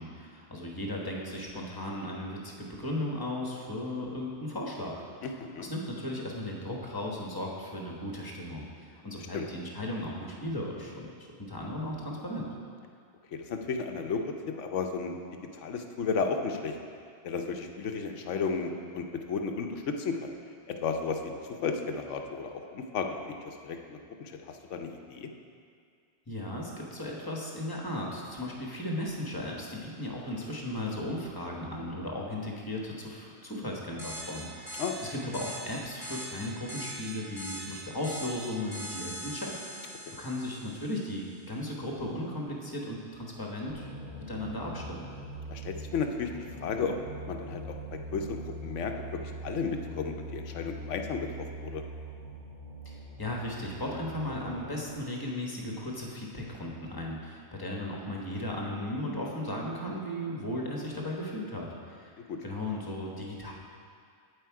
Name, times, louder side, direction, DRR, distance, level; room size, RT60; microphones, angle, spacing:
voice 1, 0.0-5.0 5.6-11.1 11.4-12.5 26.3-34.8 35.1-43.9 44.3-45.1 52.8-62.1 62.4-63.5, left 1 dB, 20° left, -2 dB, 1.2 m, -36 dB
voice 2, 5.2-5.7 9.2-9.4 13.3-15.2 15.5-16.7 17.2-20.3 20.7-23.1 23.4-25.3 34.8-35.0 45.5-46.3 46.6-46.9 47.3-48.9 49.2-51.3 51.6-51.8 62.3-62.4, left 5 dB, 85° left, 4 dB, 1.1 m, -33 dB
sound 1, 34.0-41.1, equal, ahead, 2.0 m, -42 dB
sound 2, 43.7-55.0, right 1 dB, 45° right, 1.0 m, -42 dB
8.7 x 7.8 x 4.7 m, 2.3 s
omnidirectional pair, 1.2 m